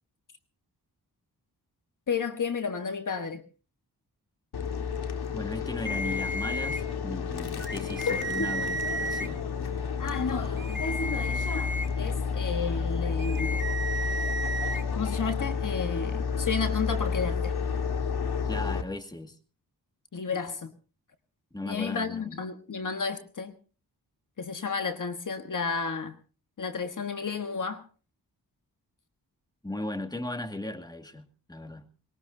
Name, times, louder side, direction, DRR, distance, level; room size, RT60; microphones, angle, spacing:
voice 1, 2.1-3.4 8.1-8.5 10.0-13.6 14.9-17.6 20.1-20.7 21.7-23.5 24.4-26.2 26.6-27.8, left 5 dB, 55° left, 7 dB, 1.4 m, -32 dB
sound 1, 4.5-18.8, left 6 dB, 85° left, 1.8 m, -31 dB
voice 2, 5.3-9.4 18.5-19.4 21.5-22.4 29.6-31.9, left 1 dB, 10° left, 6 dB, 2.1 m, -37 dB
sound 2, 5.8-6.8 7.6-9.3 10.6-11.9 13.2-14.8, right 1 dB, 30° right, 2.4 m, -33 dB
23.0 x 21.0 x 2.7 m, 0.36 s
wide cardioid pair, 85°, 38 cm